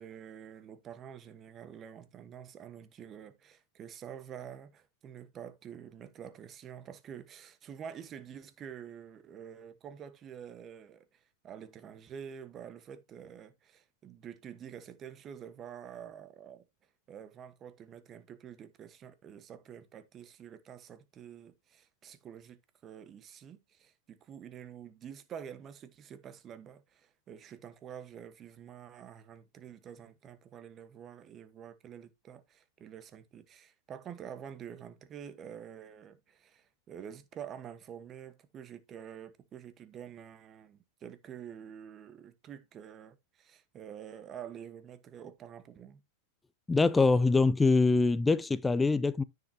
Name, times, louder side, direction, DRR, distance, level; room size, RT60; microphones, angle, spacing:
voice 1, 0.0-16.7 17.1-46.0, right 8 dB, 30° right, 1.3 m, -48 dB
voice 2, 46.7-49.2, left 3 dB, 10° left, 0.5 m, -24 dB
9.7 x 6.9 x 2.8 m
hypercardioid pair, 105°, 0 cm